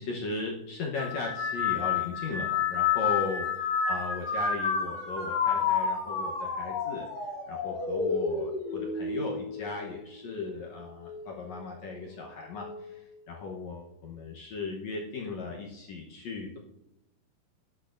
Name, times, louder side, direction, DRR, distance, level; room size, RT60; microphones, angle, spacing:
voice 1, 0.0-3.4 3.8-7.1 7.5-16.6, left 3 dB, 70° left, -1 dB, 1.6 m, -37 dB
sound 1, 0.9-10.6 11.0-11.6 12.6-12.9, left 6 dB, 85° left, 4.2 m, -30 dB
18.0 x 10.5 x 2.6 m, 0.89 s
omnidirectional pair, 4.6 m